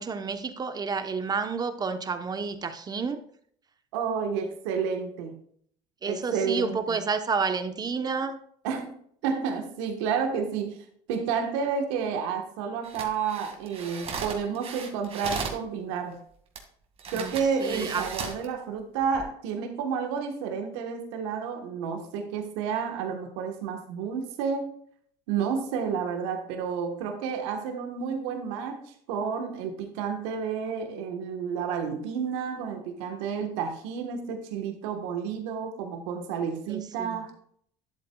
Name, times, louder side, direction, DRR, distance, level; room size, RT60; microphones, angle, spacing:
voice 1, 0.0-3.2 6.0-8.4 17.1-17.3 17.6-18.0 36.7-37.2, right 5 dB, 30° right, 1.0 m, -30 dB
voice 2, 3.9-5.4 6.0-6.8 8.6-9.0 9.2-16.2 17.1-24.7 25.3-37.3, right 6 dB, 85° right, 1.3 m, -30 dB
sound 1, 12.8-15.6 16.6-16.7 17.0-18.5 19.0-19.2, right 5 dB, 45° right, 2.0 m, -36 dB
11.5 x 7.7 x 2.3 m
supercardioid pair, 100°, 14 cm